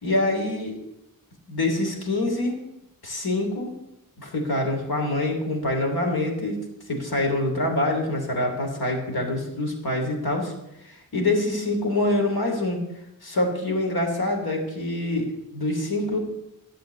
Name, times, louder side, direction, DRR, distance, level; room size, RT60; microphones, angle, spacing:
voice 1, 0.0-0.8 1.5-2.6 3.0-3.8 4.2-6.6 6.9-10.5 10.8-12.8 13.2-16.2, left 2 dB, 80° left, 2 dB, 3.2 m, -25 dB
12.0 x 7.6 x 8.2 m, 0.86 s
wide cardioid pair, 70°, 36 cm